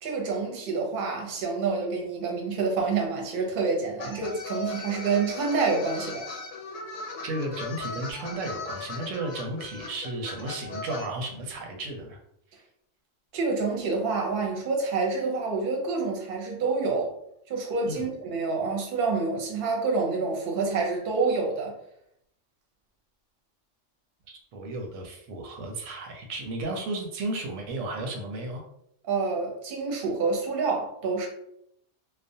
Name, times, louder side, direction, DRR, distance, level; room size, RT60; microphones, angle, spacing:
voice 1, 0.0-6.3 13.3-17.1 17.5-21.7 29.1-31.3, right 4 dB, 55° right, 1 dB, 0.7 m, -27 dB
sound 1, 4.0-11.1, left 3 dB, 85° left, 1.0 m, -38 dB
voice 2, 7.2-12.2 17.9-18.1 24.3-28.6, right 2 dB, 90° right, 2 dB, 1.0 m, -34 dB
2.4 x 2.1 x 2.6 m, 0.73 s
omnidirectional pair, 1.3 m